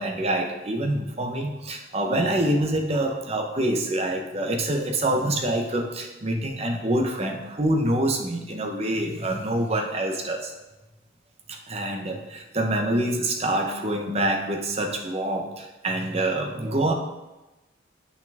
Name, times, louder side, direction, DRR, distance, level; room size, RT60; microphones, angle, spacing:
voice 1, 0.0-10.5 11.5-16.9, right 1 dB, 30° right, 2 dB, 0.9 m, -26 dB
8.5 x 5.9 x 3.5 m, 1.0 s
head